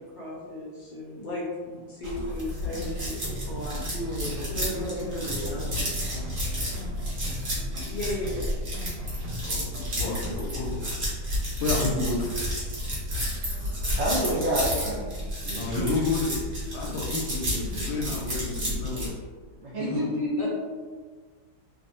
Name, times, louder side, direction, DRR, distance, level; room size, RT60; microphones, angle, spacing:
voice 1, 0.0-3.4 4.5-5.6 7.9-8.5 20.4-20.5, left 1 dB, 65° left, -6 dB, 1.0 m, -35 dB
sound 1, 2.0-19.1, equal, 45° right, 1.0 m, -31 dB
sound 2, 2.7-10.5, right 1 dB, 85° right, 1.3 m, -40 dB
voice 2, 3.4-6.7 15.5-16.0 19.8-20.0, right 1 dB, 30° right, -10 dB, 0.3 m, -36 dB
voice 3, 9.9-10.7 11.6-12.3 15.4-16.3 16.7-19.1 19.8-19.9, left 3 dB, 85° left, -2 dB, 1.3 m, -30 dB
voice 4, 14.0-15.1 19.5-20.5, equal, 60° right, -7 dB, 1.4 m, -27 dB
3.2 x 2.0 x 2.6 m, 1.5 s
omnidirectional pair, 2.0 m